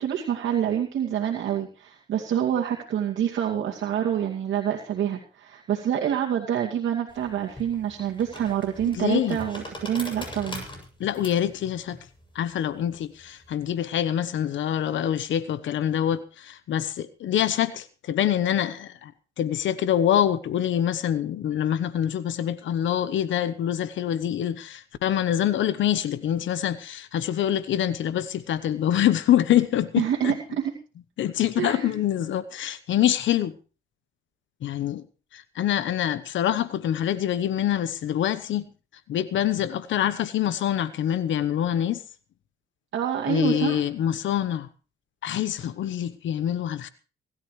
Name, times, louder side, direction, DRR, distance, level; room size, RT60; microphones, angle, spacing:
voice 1, 0.0-10.6 30.0-30.7 31.6-31.9 42.9-43.8, right 9 dB, 70° right, 2.4 m, -27 dB
sound 1, 7.1-13.8, left 1 dB, 25° left, 7.6 m, -42 dB
voice 2, 8.9-9.4 11.0-12.0 12.3-19.1 19.4-30.3 31.2-33.5 34.6-35.0 35.3-38.7 39.1-42.0 43.3-44.7 45.2-46.9, left 11 dB, 70° left, 1.1 m, -25 dB
24.5 x 13.0 x 3.2 m
cardioid pair, 90°, 20 cm